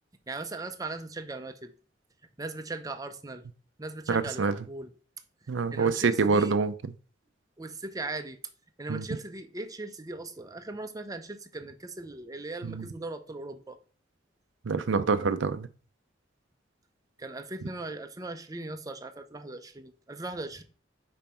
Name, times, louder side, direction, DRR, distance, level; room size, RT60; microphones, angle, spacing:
voice 1, 0.3-1.7 2.4-3.4 3.8-4.9 5.7-6.6 7.6-8.4 8.8-13.8 17.2-20.6, right 2 dB, 20° right, 0.6 m, -39 dB
voice 2, 4.1-4.6 5.5-6.9 8.9-9.1 12.7-12.9 14.6-15.7, right 4 dB, 80° right, 0.5 m, -26 dB
5.4 x 5.2 x 4.3 m
head